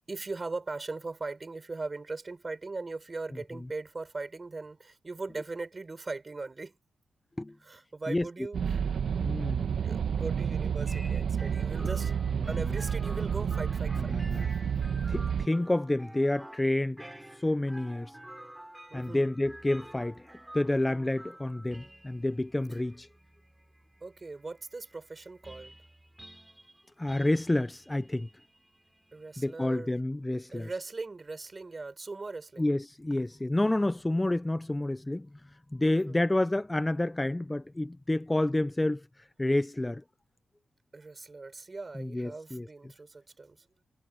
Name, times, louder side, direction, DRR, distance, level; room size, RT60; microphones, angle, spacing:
voice 1, 0.1-6.8 7.6-8.6 9.3-12.1 12.5-14.4 14.9-15.0 18.9-19.3 24.0-25.7 29.1-30.0 30.5-32.7 35.9-36.2 40.9-43.8, right 3 dB, 35° right, 4.6 m, -40 dB
sound 1, 8.5-15.5, right 7 dB, 70° right, 1.2 m, -30 dB
voice 2, 9.2-9.7 14.1-14.5 15.1-17.0 17.3-18.2 18.9-23.1 27.0-28.3 29.4-30.7 32.6-35.3 35.7-39.0 39.4-40.0 42.0-42.7, left 1 dB, 15° left, 0.6 m, -29 dB
sound 2, 10.9-29.6, right 1 dB, 10° right, 3.5 m, -51 dB
cardioid pair, 80°, 0 cm